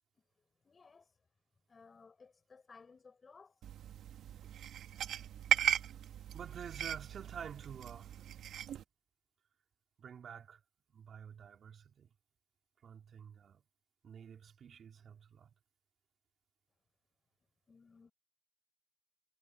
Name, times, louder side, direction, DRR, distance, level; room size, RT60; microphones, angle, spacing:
voice 1, 0.6-1.1 1.7-3.6 17.7-18.1, left 4 dB, 35° left, 7.1 m, -59 dB
sound 1, 3.6-8.8, right 10 dB, 75° right, 1.4 m, -37 dB
voice 2, 6.3-8.3 10.0-10.6 10.9-12.1 12.8-13.6 14.0-15.5, right 7 dB, 55° right, 3.2 m, -49 dB
cardioid pair, 90°, 0 cm